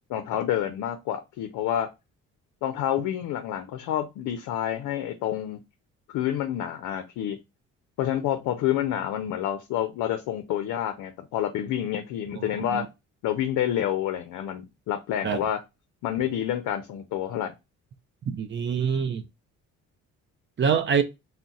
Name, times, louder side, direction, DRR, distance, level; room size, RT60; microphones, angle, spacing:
voice 1, 0.1-1.9 2.6-5.6 6.1-7.4 8.0-12.9 13.2-15.6 16.0-17.5, left 11 dB, 85° left, 0.5 m, -28 dB
voice 2, 12.4-12.9 15.2-15.4 18.3-19.2 20.6-21.0, right 7 dB, 40° right, 0.5 m, -25 dB
2.4 x 2.1 x 3.9 m
cardioid pair, 90°, 30 cm